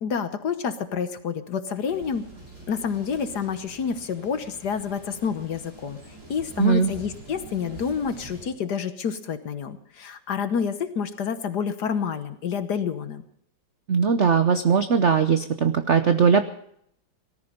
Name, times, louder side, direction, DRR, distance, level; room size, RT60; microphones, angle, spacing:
voice 1, 0.0-2.3 2.7-6.0 6.3-13.2, left 6 dB, 55° left, 10 dB, 1.4 m, -28 dB
sound 1, 1.9-8.5, right 2 dB, 40° right, 7.3 m, -45 dB
voice 2, 6.6-6.9 13.9-16.4, right 6 dB, 70° right, 9 dB, 0.6 m, -20 dB
18.5 x 14.0 x 5.3 m, 0.69 s
omnidirectional pair, 2.4 m